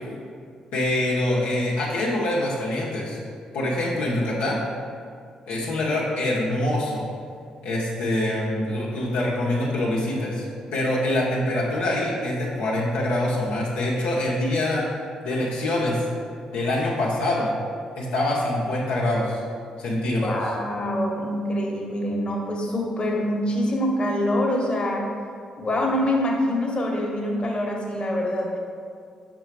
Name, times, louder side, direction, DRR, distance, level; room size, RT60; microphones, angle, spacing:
voice 1, 0.7-3.2 3.5-4.6 5.5-7.0 7.6-10.5 10.7-14.9 15.2-16.0 16.5-17.5 18.0-19.4 19.8-20.3, left 1 dB, 70° left, -5 dB, 0.8 m, -24 dB
voice 2, 20.2-25.1 25.6-28.6, left 1 dB, 35° left, -1 dB, 1.1 m, -25 dB
5.6 x 3.8 x 4.7 m, 2.2 s
hypercardioid pair, 40°, 3 cm